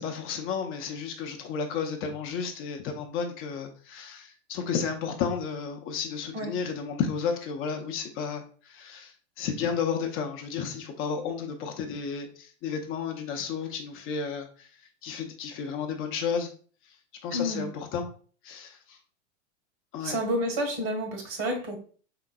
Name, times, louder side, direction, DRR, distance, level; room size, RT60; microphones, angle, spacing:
voice 1, 0.0-14.7 15.0-16.5 17.2-18.1 18.4-19.0 19.9-20.2, left 6 dB, 35° left, 4 dB, 0.6 m, -32 dB
voice 2, 17.3-17.6 20.0-21.8, equal, 55° right, 3 dB, 1.5 m, -29 dB
3.8 x 3.8 x 2.2 m, 0.42 s
hypercardioid pair, 110°, 37 cm